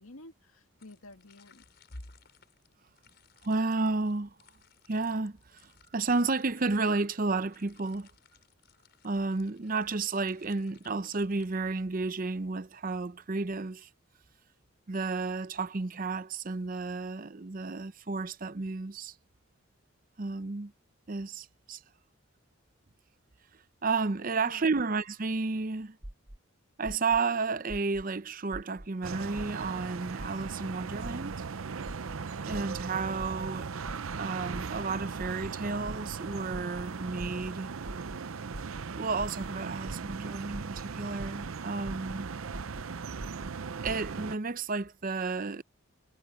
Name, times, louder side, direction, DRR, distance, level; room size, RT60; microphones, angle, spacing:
voice 1, 0.0-1.6 1.9-2.1 24.4-24.7, left 1 dB, 85° left, 2.0 m, -49 dB
sound 1, 0.8-12.1, left 9 dB, 50° left, 6.8 m, -64 dB
voice 2, 3.4-4.3 4.9-8.1 9.0-13.9 14.9-19.1 20.2-20.7 21.1-21.8 23.8-26.0 26.8-31.4 32.5-33.7 34.2-37.7 39.0-42.3 43.8-45.6, right 3 dB, 40° right, 0.6 m, -32 dB
sound 2, 26.0-26.4 26.9-27.2 27.7-28.0 28.5-28.9 29.4-29.7 30.2-30.5 31.0-31.4 31.9-32.2 32.5-32.8 33.2-33.5 33.8-34.2 34.5-34.8 35.2-35.5 35.8-36.2 36.5-36.8 37.2-37.5 37.8-38.2 38.5-38.8 39.2-39.5 39.8-40.2 40.5-40.8 41.2-41.5 41.8-42.2 42.5-42.8 43.2-43.5 43.8-44.1, right 1 dB, 15° right, 0.8 m, -42 dB
sound 3, 29.0-44.4, right 5 dB, 75° right, 0.6 m, -38 dB
head